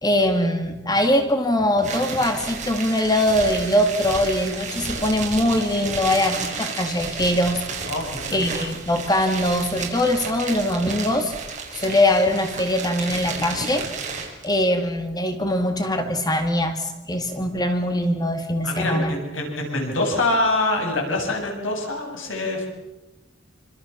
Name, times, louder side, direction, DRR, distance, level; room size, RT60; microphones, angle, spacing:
voice 1, 0.0-7.6 8.3-11.3 11.7-13.9 14.4-19.2, left 1 dB, 20° left, 6 dB, 2.2 m, -22 dB
sound 1, 1.8-14.5, right 5 dB, 40° right, 6.6 m, -32 dB
voice 2, 7.9-8.4 18.6-22.7, left 2 dB, 80° left, 2 dB, 7.9 m, -25 dB
29.0 x 26.5 x 7.3 m, 1.0 s
head